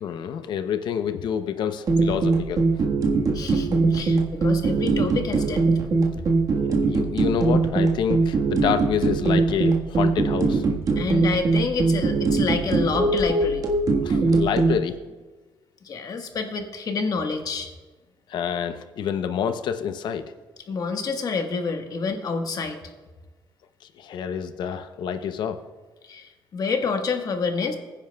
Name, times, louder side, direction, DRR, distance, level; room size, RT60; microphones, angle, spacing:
voice 1, 0.0-2.8 6.6-10.6 14.0-14.9 18.3-20.2 24.0-25.6, left 8 dB, 70° left, 9 dB, 0.7 m, -27 dB
sound 1, 1.9-14.8, right 3 dB, 50° right, 1.5 m, -21 dB
voice 2, 3.3-5.6 11.0-13.6 15.8-17.7 20.7-22.8 26.0-27.7, left 4 dB, 50° left, 5 dB, 1.4 m, -28 dB
21.5 x 10.0 x 2.3 m, 1.3 s
cardioid pair, 100°, 8 cm